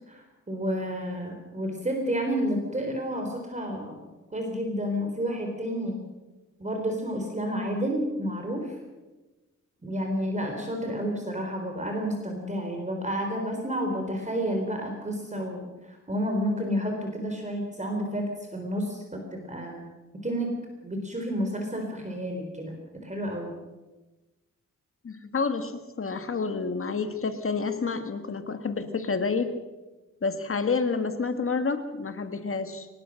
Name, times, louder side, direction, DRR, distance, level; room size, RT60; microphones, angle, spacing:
voice 1, 0.1-4.0 4.3-6.0 6.6-8.8 9.8-19.9 20.2-20.5 20.8-23.5, equal, 25° right, 3 dB, 4.0 m, -30 dB
voice 2, 25.0-29.5 30.2-32.9, left 4 dB, 45° left, 8 dB, 1.8 m, -29 dB
24.0 x 19.5 x 6.5 m, 1.1 s
wide cardioid pair, 115°, 30 cm